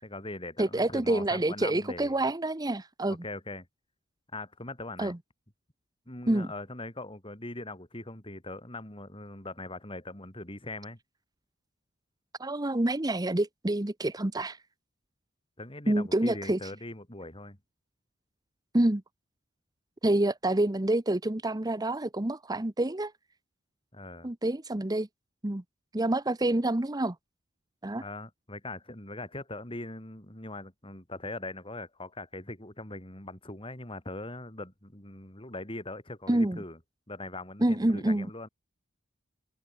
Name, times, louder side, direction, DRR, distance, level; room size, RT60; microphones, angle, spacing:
voice 1, 0.0-2.3 3.2-3.7 4.3-5.1 6.1-11.0 15.6-17.6 23.9-24.3 27.9-36.8 37.1-38.5, left 2 dB, 25° left, 4.7 m, -41 dB
voice 2, 0.6-3.2 5.0-5.2 6.3-6.5 12.4-14.6 15.9-16.6 18.7-19.0 20.0-23.1 24.2-25.1 25.4-25.6 25.9-27.2 27.8-28.0 36.3-36.6 37.6-38.3, right 1 dB, 20° right, 0.9 m, -27 dB
head